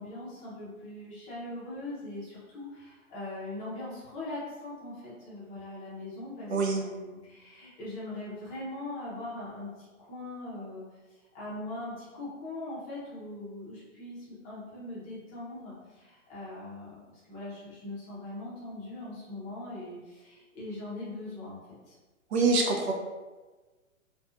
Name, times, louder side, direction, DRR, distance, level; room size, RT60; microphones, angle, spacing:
voice 1, 0.0-10.8 11.3-21.6 21.9-22.0, left 2 dB, 20° left, -8 dB, 0.6 m, -41 dB
voice 2, 6.5-6.8 22.3-22.9, right 3 dB, 55° right, 0 dB, 0.5 m, -25 dB
2.5 x 2.3 x 2.3 m, 1.3 s
hypercardioid pair, 135°, 40 cm